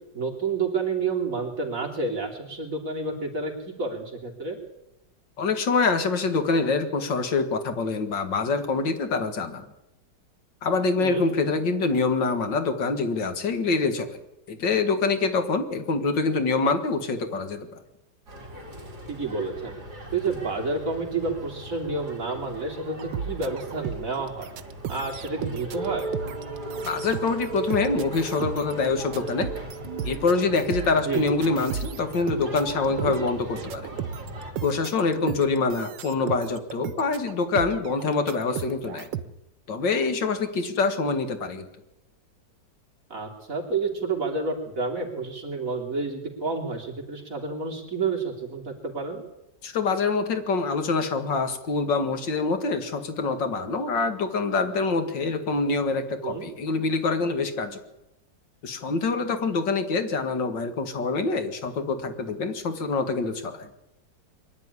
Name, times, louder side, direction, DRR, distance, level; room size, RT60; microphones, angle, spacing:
voice 1, 0.1-4.6 11.0-11.2 19.1-19.8 20.1-24.5 24.9-26.1 31.0-31.3 32.8-33.2 43.1-49.2 56.2-56.5, right 4 dB, 45° right, 1 dB, 3.6 m, -30 dB
voice 2, 5.4-9.7 10.6-14.2 14.5-17.8 26.8-29.5 30.0-33.9 34.6-39.1 39.7-41.7 49.6-57.8 58.6-63.7, left 4 dB, 80° left, 8 dB, 2.5 m, -25 dB
sound 1, 18.3-34.5, equal, 60° right, 4.2 m, -41 dB
sound 2, 23.0-39.2, right 8 dB, 90° right, 1.7 m, -35 dB
sound 3, 25.8-30.8, right 3 dB, 30° right, 1.0 m, -36 dB
23.0 x 11.5 x 9.8 m, 0.93 s
omnidirectional pair, 1.9 m